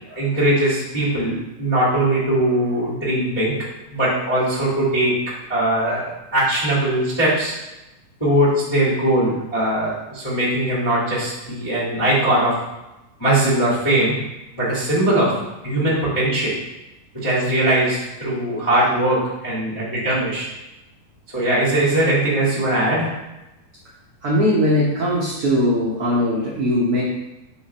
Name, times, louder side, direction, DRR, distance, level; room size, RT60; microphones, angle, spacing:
voice 1, 0.1-6.1 6.3-7.6 8.2-12.6 13.2-14.2 14.5-16.6 17.1-20.5 21.3-23.2, right 1 dB, 20° left, -10 dB, 0.8 m, -20 dB
voice 2, 24.2-27.0, equal, 80° right, -5 dB, 1.2 m, -20 dB
5.6 x 3.9 x 5.3 m, 0.98 s
omnidirectional pair, 4.0 m